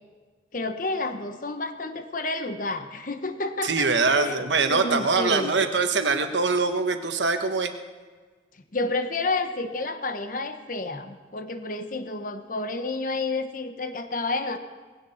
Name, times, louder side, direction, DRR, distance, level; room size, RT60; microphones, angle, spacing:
voice 1, 0.5-4.4 4.7-5.6 8.7-14.6, left 3 dB, 50° left, 8 dB, 1.1 m, -30 dB
voice 2, 3.6-7.7, right 4 dB, 90° right, 6 dB, 1.3 m, -23 dB
19.0 x 16.5 x 4.4 m, 1.4 s
head